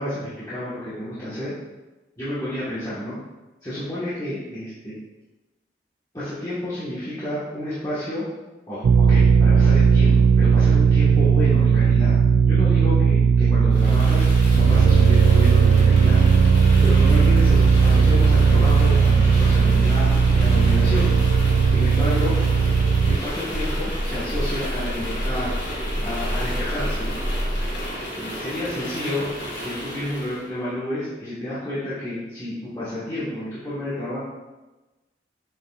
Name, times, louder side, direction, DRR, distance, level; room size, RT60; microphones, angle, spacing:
voice 1, 0.0-1.5 2.2-3.2 3.6-5.0 6.1-8.3 8.7-12.2 12.5-14.2 14.5-16.2 16.8-21.1 21.7-22.3 23.0-25.5 26.0-27.2 28.1-29.3 29.6-34.2, left 1 dB, 20° left, -11 dB, 1.4 m, -30 dB
sound 1, 8.8-23.2, right 5 dB, 80° right, 0.3 m, -16 dB
sound 2, 13.7-30.4, equal, 80° left, 2.1 m, -29 dB
7.5 x 5.3 x 2.4 m, 1.1 s
head